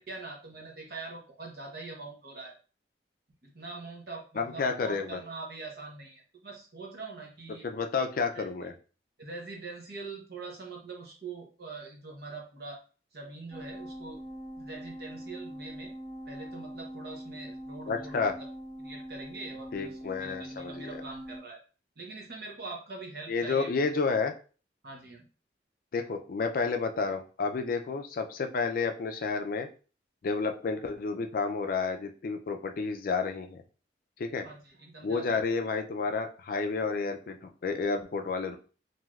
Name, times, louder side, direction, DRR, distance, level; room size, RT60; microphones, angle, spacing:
voice 1, 0.0-2.5 3.4-7.7 8.3-8.4 9.2-12.8 13.1-14.2 14.6-15.9 16.3-18.2 18.8-21.6 22.0-23.7 24.8-25.2 34.4-35.4, right 3 dB, 60° right, 0 dB, 0.8 m, -43 dB
voice 2, 4.4-5.2 7.6-8.7 17.9-18.3 19.7-20.7 23.3-24.3 25.9-29.7 30.2-33.6 34.2-34.5 35.0-38.6, left 4 dB, 50° left, 6 dB, 0.4 m, -30 dB
sound 1, 13.5-21.4, equal, 25° right, 1.0 m, -43 dB
3.2 x 2.7 x 2.3 m, 0.36 s
head